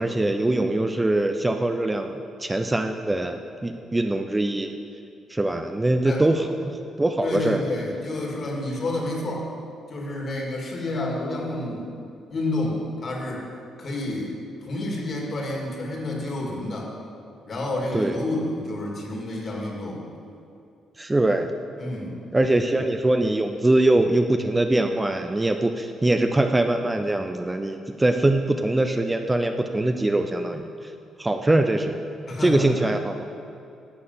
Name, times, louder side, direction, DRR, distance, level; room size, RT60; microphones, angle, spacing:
voice 1, 0.0-4.7 5.3-6.7 7.0-7.6 17.9-18.2 21.0-21.5 22.3-30.7 31.2-32.0 32.4-33.1, right 2 dB, 15° right, 6 dB, 0.6 m, -22 dB
voice 2, 7.2-9.5 9.9-11.9 12.3-13.5 13.8-14.3 14.6-16.9 17.5-20.0 21.8-22.2 32.3-32.9, left 2 dB, 50° left, -1 dB, 2.4 m, -29 dB
11.5 x 6.6 x 5.7 m, 2.6 s
cardioid pair, 90°, 0 cm